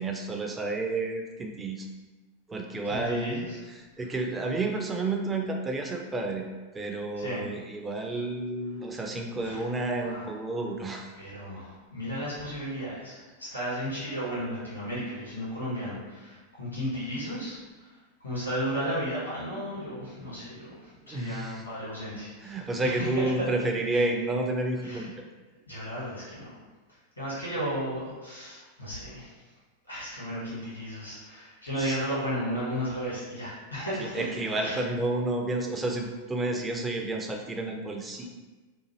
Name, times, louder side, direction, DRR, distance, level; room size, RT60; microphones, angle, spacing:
voice 1, 0.0-1.9 2.5-3.5 3.8-6.5 6.7-11.1 21.1-21.6 22.4-25.1 31.8-32.0 34.0-38.3, right 2 dB, 15° right, 2 dB, 0.4 m, -30 dB
voice 2, 2.8-3.6 7.2-7.4 9.3-9.6 10.0-10.3 11.2-17.9 18.2-23.5 23.9-24.0 24.8-25.1 25.7-26.6 27.2-29.3 29.9-34.2 34.6-34.8, equal, 80° left, -9 dB, 1.3 m, -34 dB
2.7 x 2.4 x 2.9 m, 1.2 s
figure-of-eight pair, 90°, 0 cm